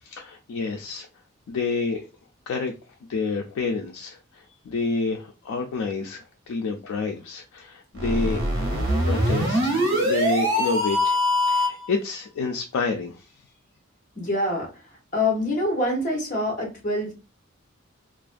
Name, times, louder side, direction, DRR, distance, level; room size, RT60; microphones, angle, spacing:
voice 1, 0.0-1.1 1.5-2.1 2.5-2.7 3.1-11.2 11.5-13.3, left 4 dB, 90° left, 0.3 m, -29 dB
sound 1, 7.9-11.9, equal, 75° right, 0.8 m, -23 dB
voice 2, 14.2-14.7 15.1-17.1, left 1 dB, 40° left, 0.8 m, -25 dB
2.4 x 2.1 x 2.4 m
head